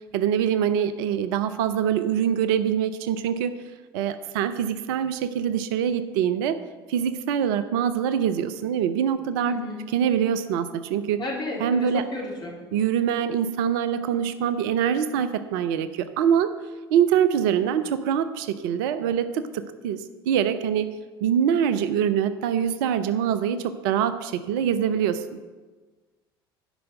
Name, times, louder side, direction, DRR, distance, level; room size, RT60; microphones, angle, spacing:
voice 1, 0.1-3.6 3.9-6.6 6.9-9.6 9.9-11.2 11.6-12.0 12.7-16.6 16.9-20.9 21.2-25.4, right 8 dB, 60° right, 12 dB, 0.6 m, -24 dB
voice 2, 9.4-9.8 11.2-12.5, left 1 dB, 35° left, -2 dB, 3.7 m, -32 dB
10.0 x 5.6 x 7.7 m, 1.3 s
figure-of-eight pair, 60°, 13 cm